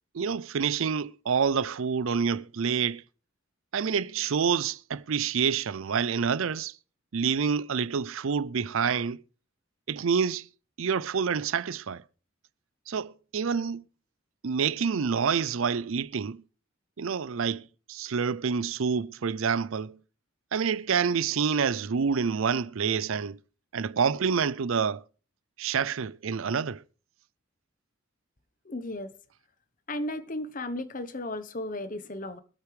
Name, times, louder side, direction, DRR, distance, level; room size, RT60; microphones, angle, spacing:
voice 1, 0.1-3.0 3.7-6.8 7.1-9.2 9.9-10.5 10.8-12.0 12.9-13.8 14.4-16.4 17.0-20.0 20.5-23.4 23.7-25.0 25.6-26.8, right 6 dB, 75° right, 0.5 m, -27 dB
voice 2, 28.7-29.1 29.9-32.4, left 1 dB, 40° left, 1.0 m, -34 dB
24.0 x 8.2 x 3.3 m
head